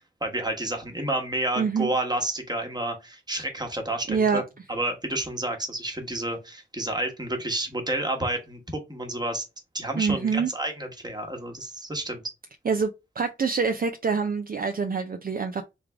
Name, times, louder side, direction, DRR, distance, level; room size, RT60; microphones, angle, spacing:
voice 1, 0.2-4.4 4.7-9.4 9.7-12.2, right 1 dB, 20° right, 1.3 m, -30 dB
voice 2, 1.6-1.9 4.1-4.4 10.0-10.5 12.7-12.9 13.2-15.6, right 5 dB, 50° right, 0.5 m, -25 dB
3.7 x 3.3 x 3.4 m
wide cardioid pair, 100°, 19 cm